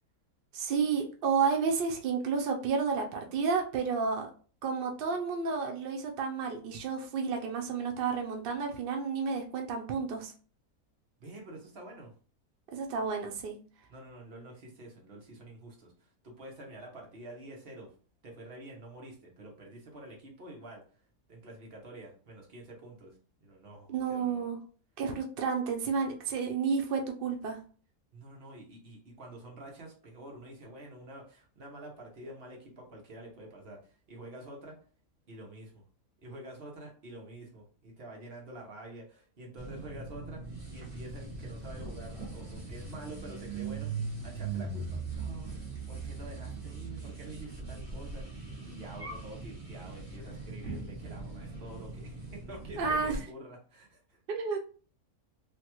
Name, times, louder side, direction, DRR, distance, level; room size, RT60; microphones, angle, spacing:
voice 1, 0.5-4.3 4.6-10.3 12.7-13.6 23.9-24.6 25.0-27.6 52.8-53.2 54.3-54.6, right 5 dB, 85° right, 3 dB, 0.5 m, -31 dB
voice 2, 11.2-12.1 13.9-17.9 18.2-20.8 21.3-23.1 23.4-24.5 28.1-34.8 35.3-35.8 36.2-54.2, right 1 dB, 45° right, -1 dB, 1.0 m, -48 dB
sound 1, 39.6-53.2, right 4 dB, 25° right, 1.3 m, -40 dB
3.3 x 2.3 x 2.9 m, 0.41 s
omnidirectional pair, 1.6 m